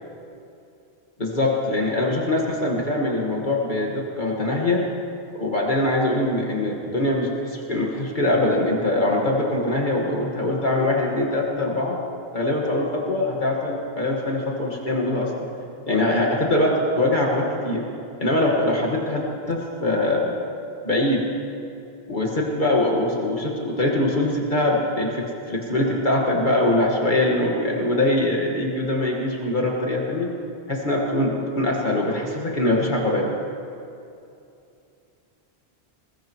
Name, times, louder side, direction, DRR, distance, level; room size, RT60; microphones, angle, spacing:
voice 1, 1.2-4.9 5.3-12.0 12.3-15.5 15.9-17.9 18.2-20.3 20.8-21.3 22.1-30.3 30.7-33.3, left 1 dB, 45° left, -2 dB, 2.0 m, -23 dB
21.0 x 20.5 x 3.2 m, 2.6 s
omnidirectional pair, 1.1 m